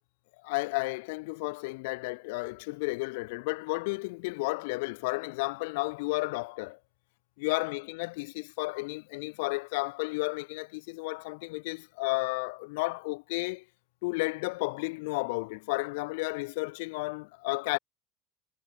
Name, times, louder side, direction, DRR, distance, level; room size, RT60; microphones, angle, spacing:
voice 1, 0.4-6.8 7.4-13.6 14.0-17.8, left 26 dB, 80° left, 1.9 m, -32 dB
supercardioid pair, 105°, 0 cm